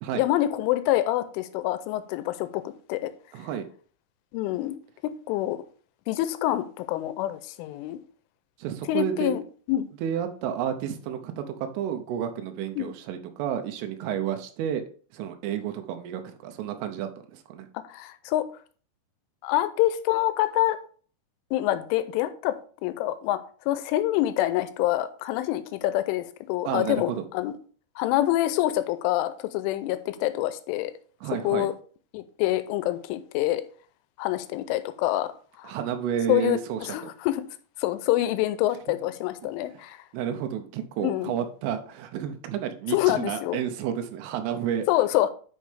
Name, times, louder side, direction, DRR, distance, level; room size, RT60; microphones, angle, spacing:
voice 1, 0.1-3.1 4.3-4.8 5.0-5.6 6.1-8.0 8.9-9.4 9.7-9.9 12.8-12.9 17.7-18.5 19.4-20.8 21.5-22.6 22.8-23.4 23.7-27.5 28.0-30.9 31.4-31.7 32.1-33.6 34.2-35.3 35.6-35.8 36.3-36.6 36.9-37.4 37.8-40.0 41.0-41.4 42.9-43.6 44.9-45.3, left 14 dB, 85° left, 3.1 m, -26 dB
voice 2, 3.3-3.7 8.6-9.4 10.0-14.8 15.1-17.7 26.7-27.2 31.2-31.7 35.6-37.1 38.9-39.0 39.7-39.8 40.1-44.9, right 9 dB, 90° right, 3.4 m, -31 dB
10.0 x 5.4 x 3.3 m
omnidirectional pair, 5.6 m